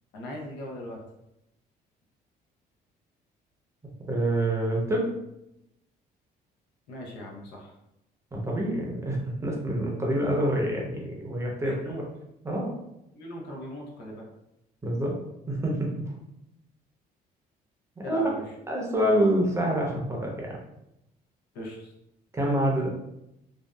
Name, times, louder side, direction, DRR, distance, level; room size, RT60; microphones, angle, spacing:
voice 1, 0.1-1.0 6.9-7.7 11.6-12.0 13.1-14.3 18.0-18.4 21.5-21.9, left 1 dB, 85° left, -1 dB, 0.7 m, -39 dB
voice 2, 4.1-5.1 8.3-12.0 12.4-12.7 14.8-15.2 15.5-15.9 18.0-18.3 18.7-20.6 22.3-22.9, right 1 dB, 15° right, -2 dB, 0.6 m, -26 dB
2.6 x 2.3 x 2.2 m, 0.85 s
cardioid pair, 110°, 17 cm